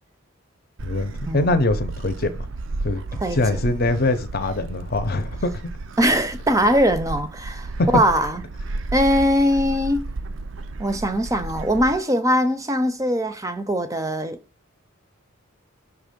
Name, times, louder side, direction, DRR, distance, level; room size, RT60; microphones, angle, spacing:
voice 1, 0.8-2.3 2.8-3.0 3.3-5.5 7.8-7.9, left 2 dB, 45° left, 0.8 m, -23 dB
Gull seagull, 0.8-12.0, right 2 dB, 60° right, 0.5 m, -33 dB
voice 2, 3.2-3.6 6.0-8.4 8.9-10.0 10.8-14.4, equal, 15° right, 0.6 m, -21 dB
6.0 x 3.2 x 5.2 m
head